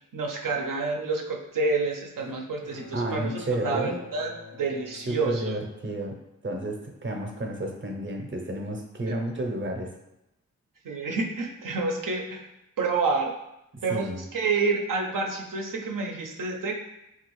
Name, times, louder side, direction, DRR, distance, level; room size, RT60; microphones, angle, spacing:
voice 1, 0.1-5.5 10.8-12.5 12.8-13.3 13.8-16.8, right 3 dB, 75° right, 1 dB, 0.6 m, -28 dB
Bowed string instrument, 2.2-6.4, left 4 dB, 85° left, 0.7 m, -47 dB
voice 2, 2.9-4.0 5.1-6.2 6.4-9.9 13.9-14.2, right 1 dB, 35° right, 2 dB, 0.7 m, -31 dB
3.4 x 2.4 x 3.0 m, 0.88 s
cardioid pair, 45°, 33 cm